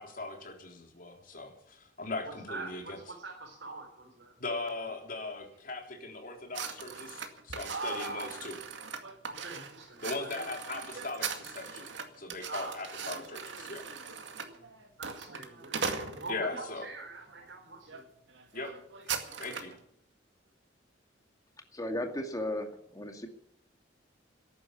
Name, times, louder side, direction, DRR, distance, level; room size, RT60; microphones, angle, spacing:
voice 1, 0.0-3.0 4.4-8.6 10.0-13.8 16.3-16.9 18.5-18.7 19.4-19.7, left 3 dB, 50° left, 2 dB, 3.6 m, -39 dB
voice 2, 2.2-4.3 7.7-8.7 9.3-10.3 12.5-12.9 13.3-13.4 13.7-13.8 14.4-14.7 15.0-15.8 16.2-18.0, right 3 dB, 70° right, -1 dB, 4.2 m, -43 dB
sound 1, 6.5-16.7 17.3-17.5 17.9-18.0 18.3-19.8, right 5 dB, 85° right, 2.1 m, -40 dB
voice 3, 21.7-23.3, left 1 dB, 20° left, 5 dB, 2.2 m, -35 dB
14.0 x 11.0 x 8.5 m, 0.71 s
head